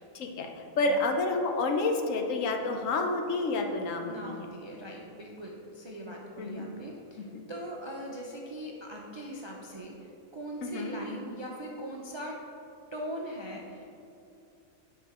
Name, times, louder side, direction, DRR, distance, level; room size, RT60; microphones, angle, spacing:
voice 1, 0.1-0.5 0.8-4.5 6.4-6.7 7.2-7.4 10.6-11.0, left 3 dB, 70° left, 4 dB, 1.0 m, -29 dB
voice 2, 4.0-10.0 10.3-12.4 12.9-13.9, equal, 40° right, -2 dB, 0.4 m, -40 dB
9.3 x 3.8 x 4.9 m, 2.7 s
omnidirectional pair, 1.5 m